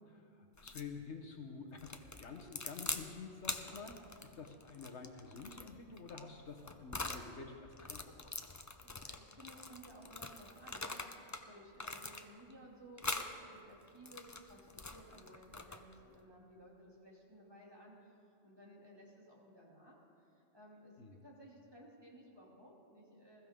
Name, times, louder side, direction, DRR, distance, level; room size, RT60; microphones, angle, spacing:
voice 1, 0.0-8.3 21.0-21.2, left 4 dB, 65° left, 3 dB, 1.3 m, -49 dB
sound 1, 0.6-0.9 1.8-3.1 3.4-7.3 7.7-11.4 11.8-12.5 13.0-13.3 13.9-16.0, left 3 dB, 25° left, 0.4 m, -44 dB
voice 2, 8.8-23.5, right 1 dB, 20° right, -4 dB, 2.6 m, -58 dB
20.5 x 14.5 x 3.7 m, 2.5 s
omnidirectional pair, 1.3 m